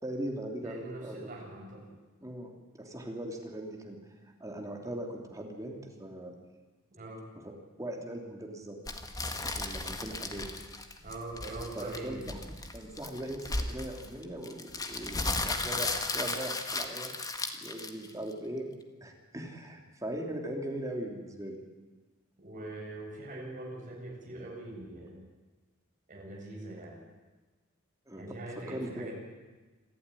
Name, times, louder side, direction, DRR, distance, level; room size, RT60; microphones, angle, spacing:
voice 1, 0.0-1.4 2.2-2.5 2.8-4.0 4.4-6.3 7.4-7.5 7.8-8.8 9.4-10.5 11.7-17.2 17.6-21.6 28.1-28.4 28.7-29.1, right 1 dB, 15° right, 1 dB, 3.2 m, -40 dB
voice 2, 0.6-1.8 6.9-7.2 11.0-12.3 22.4-25.3 26.1-27.0 28.1-29.2, right 2 dB, 40° right, -2 dB, 7.9 m, -42 dB
sound 1, 8.9-18.3, left 2 dB, 20° left, 1.8 m, -35 dB
27.0 x 14.0 x 10.0 m, 1.3 s
head